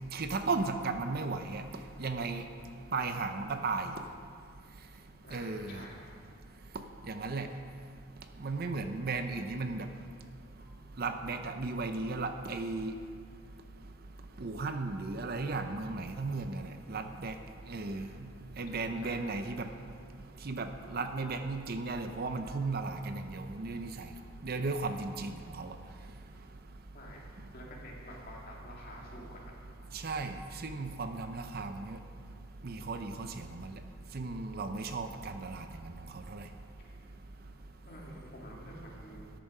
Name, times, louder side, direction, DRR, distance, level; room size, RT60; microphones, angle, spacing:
voice 1, 0.0-1.6 2.0-2.4 2.9-3.9 5.3-5.8 7.1-7.5 8.4-9.9 11.0-12.9 14.4-17.3 17.7-18.1 18.6-19.7 20.4-24.1 24.4-25.7 29.9-32.0 32.6-33.8 34.1-35.6 36.3-36.4, right 3 dB, 45° right, 8 dB, 0.6 m, -35 dB
voice 2, 5.2-6.1 8.3-8.5 10.6-10.7 17.8-18.1 18.7-19.2 22.4-22.5 26.9-27.2 27.5-29.9 33.0-33.4 36.8-37.0 37.8-39.3, left 1 dB, 45° left, -3 dB, 2.4 m, -50 dB
13.0 x 9.0 x 5.5 m, 2.3 s
head